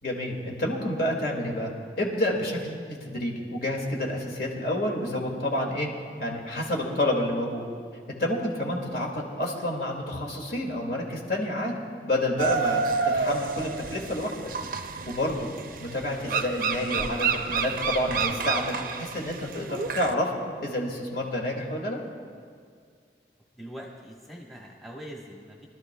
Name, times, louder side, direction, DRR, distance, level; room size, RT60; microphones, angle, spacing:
voice 1, 0.0-5.9 6.2-7.7 8.1-11.7 12.0-14.3 15.1-15.5 15.8-20.3 20.6-22.0, left 1 dB, 55° left, -1 dB, 1.9 m, -29 dB
sound 1, 12.4-20.1, right 5 dB, 50° right, 0.6 m, -29 dB
voice 2, 23.6-25.7, equal, ahead, -2 dB, 1.1 m, -42 dB
24.0 x 12.5 x 2.2 m, 2.1 s
head